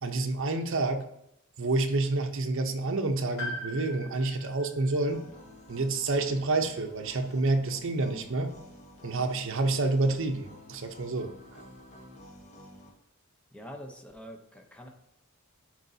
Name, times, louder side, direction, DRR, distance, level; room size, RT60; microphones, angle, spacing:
voice 1, 0.0-1.0 1.6-5.2 5.7-8.5 9.0-11.6, right 2 dB, 65° right, 5 dB, 0.8 m, -28 dB
Piano, 3.4-7.3 7.5-7.6 8.8-8.9, left 1 dB, 60° left, 1.9 m, -43 dB
sound 1, 5.1-12.9, left 1 dB, 35° left, 1.3 m, -51 dB
voice 2, 13.5-14.9, equal, 5° left, 2 dB, 0.8 m, -45 dB
10.5 x 4.5 x 2.8 m, 0.78 s
head